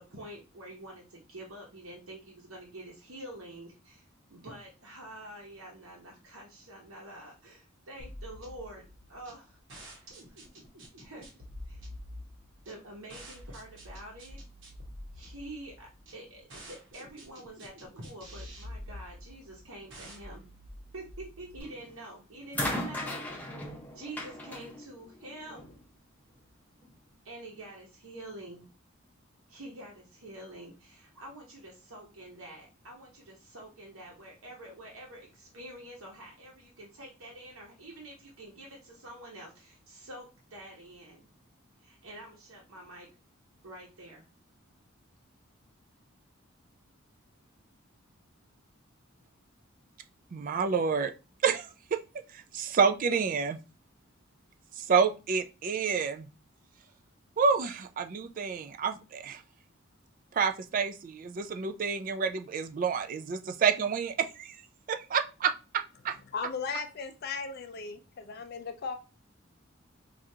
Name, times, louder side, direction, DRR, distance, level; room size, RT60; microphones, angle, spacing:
voice 1, 0.0-4.0 4.3-9.6 10.3-10.4 11.0-11.3 11.7-11.9 12.6-14.4 15.1-20.5 20.9-23.2 23.9-25.7 27.2-28.6 29.5-41.2 41.8-43.1 43.6-44.2, right 1 dB, 85° right, 0.9 m, -47 dB
sound 1, 8.0-21.6, equal, 65° right, 1.1 m, -47 dB
sound 2, 21.6-21.9 22.5-25.8 26.8-26.9, left 1 dB, 10° left, 0.7 m, -37 dB
voice 2, 50.3-51.1 51.4-52.0 52.3-53.6 54.8-56.3 57.4-59.4 60.3-64.6 64.9-66.2, right 6 dB, 40° right, 0.3 m, -29 dB
voice 3, 66.3-68.9, left 5 dB, 50° left, 0.4 m, -36 dB
4.6 x 2.4 x 2.7 m
head